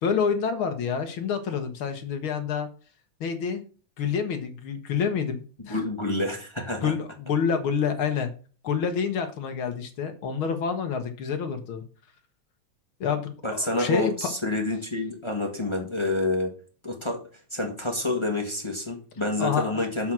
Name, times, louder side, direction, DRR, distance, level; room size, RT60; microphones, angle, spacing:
voice 1, 0.0-2.7 3.2-3.6 4.0-5.8 6.8-8.3 8.6-11.8 13.0-14.3 19.4-19.8, left 6 dB, 55° left, 1.7 m, -28 dB
voice 2, 5.7-6.9 13.4-16.5 16.8-20.1, left 2 dB, 20° left, 0.7 m, -28 dB
7.6 x 5.1 x 6.0 m
omnidirectional pair, 3.3 m